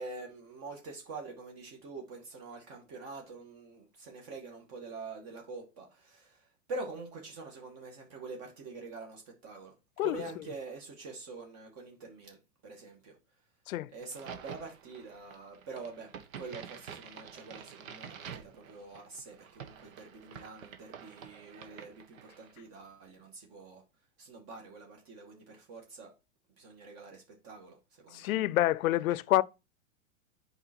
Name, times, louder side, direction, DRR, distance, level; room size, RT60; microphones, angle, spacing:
voice 1, 0.0-9.7 10.0-13.2 13.9-16.1 16.4-23.8 24.2-26.1 26.6-28.3, right 3 dB, 40° right, 2.0 m, -45 dB
Crack, 14.0-22.6, right 7 dB, 75° right, 1.6 m, -48 dB
voice 2, 28.1-29.4, left 15 dB, 80° left, 0.6 m, -27 dB
8.0 x 4.9 x 4.4 m
supercardioid pair, 135°, 41 cm